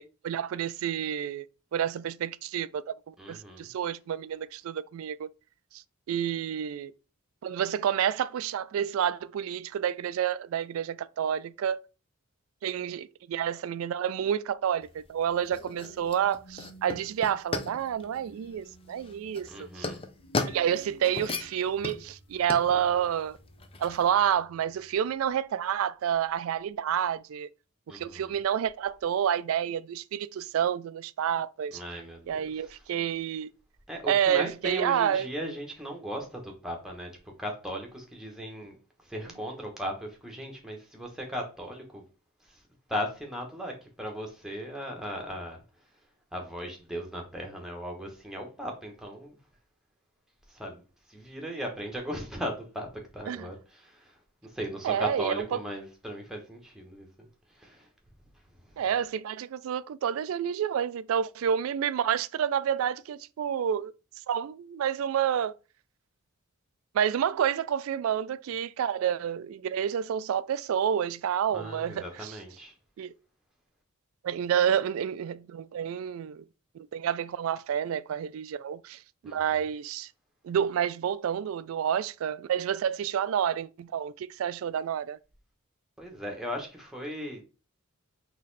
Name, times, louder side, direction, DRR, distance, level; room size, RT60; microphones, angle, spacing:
voice 1, 0.0-1.4 1.7-5.3 5.7-6.9 7.4-11.8 12.6-19.9 20.5-23.4 23.8-27.5 27.9-31.8 32.3-33.5 34.1-35.3 53.3-53.5 54.8-55.6 58.8-63.9 64.3-65.5 66.9-72.4 73.0-73.1 74.2-76.4 76.7-80.1 80.4-85.2, right 9 dB, 70° right, 0.3 m, -29 dB
voice 2, 3.2-3.7 19.5-20.0 27.9-28.3 31.7-32.5 33.9-37.1 37.4-38.8 39.0-42.0 42.5-42.6 42.9-45.6 46.3-49.4 50.5-50.8 51.1-52.9 53.1-54.2 54.4-57.1 57.6-57.9 71.5-72.7 79.2-79.6 86.0-87.4, equal, ahead, 1.1 m, -37 dB
sound 1, 14.8-24.1, left 3 dB, 25° left, 0.5 m, -37 dB
sound 2, 15.0-25.5 26.1-26.3, right 1 dB, 80° left, 1.6 m, -55 dB
4.1 x 3.0 x 3.9 m
head